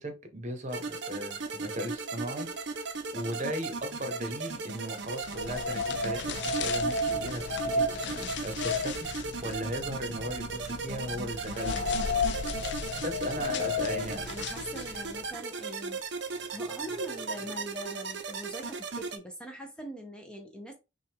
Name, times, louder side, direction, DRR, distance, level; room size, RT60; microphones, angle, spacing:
voice 1, 0.0-12.5 12.9-14.2, equal, 35° right, 0.9 m, -38 dB
sound 1, 0.7-19.2, right 4 dB, 60° right, 0.6 m, -37 dB
sound 2, 5.2-15.2, left 3 dB, 60° left, 0.4 m, -33 dB
voice 2, 13.4-20.7, equal, 5° left, 0.6 m, -43 dB
5.8 x 2.3 x 3.5 m
head